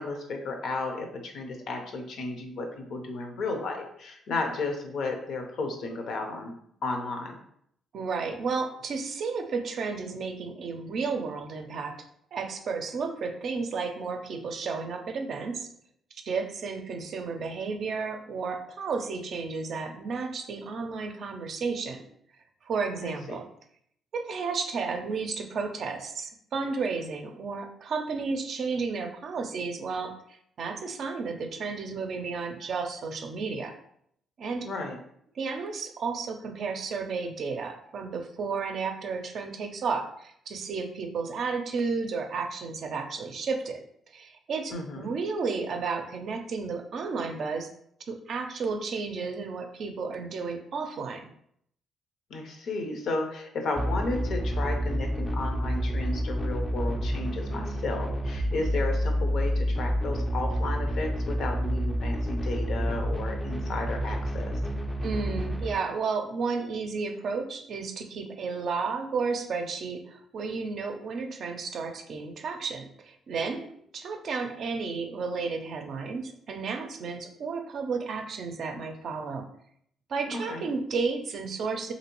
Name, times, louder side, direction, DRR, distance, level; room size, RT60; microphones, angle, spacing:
voice 1, 0.0-6.5 6.8-7.4 23.0-23.4 34.6-35.0 44.7-45.1 52.3-64.5 80.3-80.7, left 3 dB, 70° left, 4 dB, 0.6 m, -33 dB
voice 2, 7.9-12.0 12.3-15.7 16.1-22.0 22.6-23.5 24.1-30.2 30.6-33.7 34.4-34.7 35.4-43.8 44.1-47.7 48.1-51.3 65.0-79.5 80.1-81.9, right 4 dB, 60° right, 5 dB, 0.4 m, -32 dB
sound 1, 53.7-65.7, equal, 15° left, 0.4 m, -29 dB
3.0 x 2.7 x 2.9 m, 0.69 s
cardioid pair, 90°, 0 cm